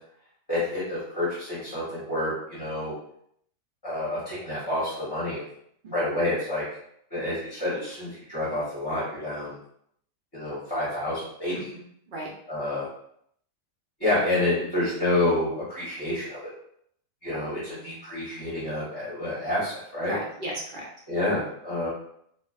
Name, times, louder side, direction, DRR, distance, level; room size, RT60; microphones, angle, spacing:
voice 1, 0.5-2.9 3.8-5.5 5.9-6.6 7.1-9.6 10.3-11.7 12.5-12.9 14.0-16.5 17.2-20.1 21.1-21.9, left 1 dB, 20° left, -10 dB, 0.8 m, -28 dB
voice 2, 11.5-12.3 17.3-18.0 20.0-20.9, right 1 dB, 55° right, -4 dB, 0.6 m, -37 dB
2.4 x 2.3 x 2.3 m, 0.69 s
omnidirectional pair, 1.4 m